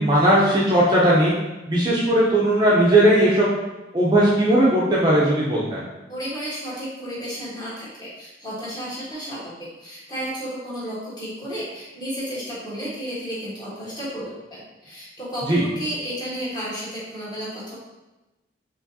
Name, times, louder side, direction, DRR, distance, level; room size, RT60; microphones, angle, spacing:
voice 1, 0.0-1.3 1.7-3.5 3.9-5.9 15.5-15.6, right 1 dB, 25° right, -5 dB, 0.5 m, -18 dB
voice 2, 6.1-9.5 9.8-17.8, equal, 25° left, -8 dB, 1.4 m, -32 dB
4.8 x 3.0 x 2.7 m, 1.0 s
head